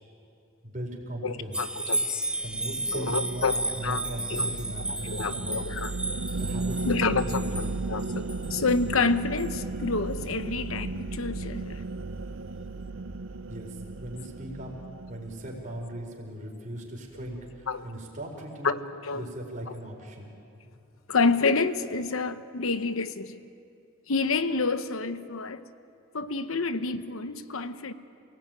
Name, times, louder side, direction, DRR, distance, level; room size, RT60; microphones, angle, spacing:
voice 1, 0.6-1.6 2.4-5.5 6.4-7.7 13.4-14.8 15.1-18.7 19.1-20.3, right 1 dB, 40° right, 1 dB, 4.7 m, -38 dB
voice 2, 1.2-2.1 2.9-4.0 4.3-4.5 5.1-5.9 6.8-11.8 17.7-17.9 18.6-19.3 21.1-23.4 24.1-25.6 26.1-27.9, left 4 dB, 90° left, 11 dB, 1.1 m, -28 dB
sound 1, 1.5-8.8 9.4-9.5, right 2 dB, 5° right, 0.6 m, -33 dB
sound 2, 2.4-16.0, right 3 dB, 80° right, 0.6 m, -35 dB
28.0 x 18.5 x 9.2 m, 2.6 s
head